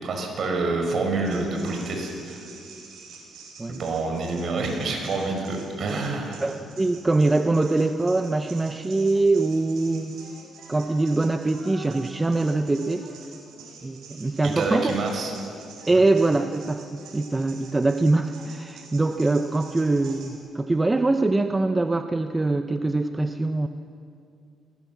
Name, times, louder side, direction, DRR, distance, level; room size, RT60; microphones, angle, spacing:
voice 1, 0.0-2.5 3.8-6.4 14.4-15.3, right 3 dB, 55° right, 2 dB, 5.6 m, -27 dB
sound 1, 1.2-20.4, right 5 dB, 80° right, 6.5 m, -47 dB
voice 2, 6.4-10.1 10.7-13.0 13.8-14.9 15.9-23.7, right 2 dB, 20° right, 7 dB, 0.8 m, -23 dB
21.0 x 19.0 x 7.5 m, 2.5 s
cardioid pair, 90°, 0 cm